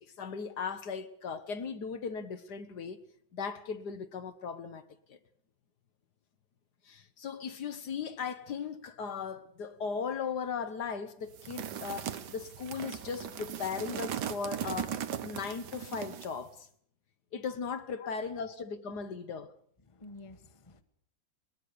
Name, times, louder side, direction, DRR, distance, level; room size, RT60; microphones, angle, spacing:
voice 1, 0.0-3.0 3.3-4.8 5.1-5.2 6.8-16.7 17.3-19.5, left 6 dB, 60° left, 1.6 m, -37 dB
sound 1, 11.3-16.4, right 9 dB, 65° right, 1.6 m, -38 dB
voice 2, 19.8-20.8, left 3 dB, 20° left, 1.2 m, -50 dB
21.0 x 20.5 x 6.8 m
omnidirectional pair, 2.0 m